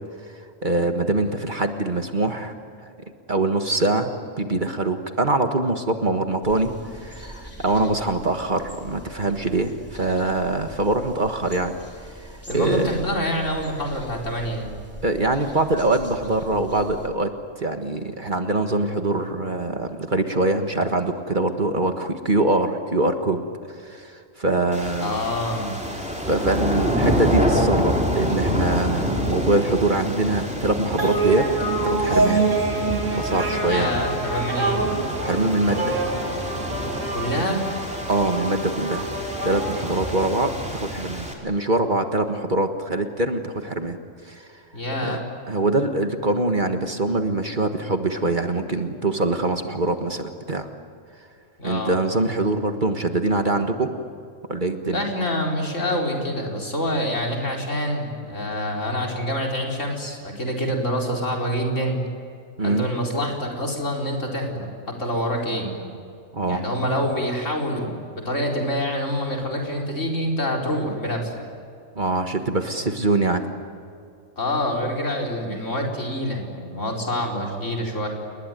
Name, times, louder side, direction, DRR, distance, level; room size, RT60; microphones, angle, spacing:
voice 1, 0.6-2.5 2.8-2.9 3.3-4.1 4.4-11.7 12.5-12.9 15.0-17.3 17.6-23.4 23.8-25.2 26.2-31.5 31.8-32.5 33.1-34.0 35.2-36.0 37.3-37.5 38.1-39.1 39.4-44.0 44.2-44.5 45.0-45.2 45.5-50.7 51.6-53.9 54.5-55.0 62.6-62.9 66.3-66.6 71.9-73.5, right 2 dB, 40° right, 6 dB, 1.7 m, -23 dB
sound 1, 6.4-17.1, right 1 dB, 10° left, 4.3 m, -42 dB
voice 2, 12.5-14.7 25.0-25.7 33.6-34.8 37.1-37.6 44.7-45.2 51.6-52.0 54.9-62.0 62.6-65.7 66.5-71.3 74.4-78.1, equal, 70° left, 0 dB, 4.9 m, -26 dB
sound 2, 24.7-41.3, equal, 5° right, 4.1 m, -27 dB
sound 3, 31.0-40.8, right 3 dB, 75° right, 3.5 m, -26 dB
29.5 x 20.5 x 9.4 m, 2.4 s
omnidirectional pair, 1.3 m